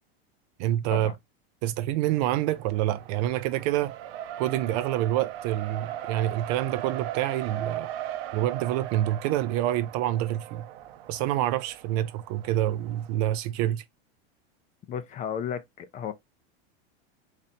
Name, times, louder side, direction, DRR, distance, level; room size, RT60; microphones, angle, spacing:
voice 1, 0.6-1.1 1.6-3.9 4.4-7.9 8.3-10.6 11.1-13.8, right 13 dB, 40° right, 0.4 m, -27 dB
Race car auto racing, 2.1-13.1, right 12 dB, 65° right, 0.7 m, -39 dB
voice 2, 14.9-16.1, left 8 dB, 25° left, 0.5 m, -34 dB
4.1 x 3.2 x 2.7 m
supercardioid pair, 145°, 32 cm